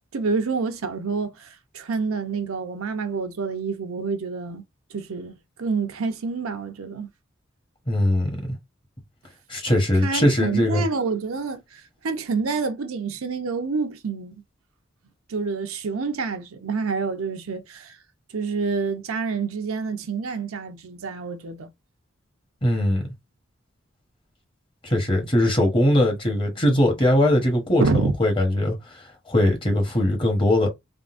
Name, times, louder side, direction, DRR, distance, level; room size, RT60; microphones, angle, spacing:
voice 1, 0.1-4.6 4.9-7.1 10.0-14.3 15.3-18.0 18.3-21.7 27.8-28.1, right 4 dB, 90° right, 0.6 m, -28 dB
voice 2, 7.9-8.6 9.5-10.8 22.6-23.0 24.8-30.7, left 1 dB, 25° left, 0.9 m, -21 dB
3.6 x 2.2 x 2.5 m
head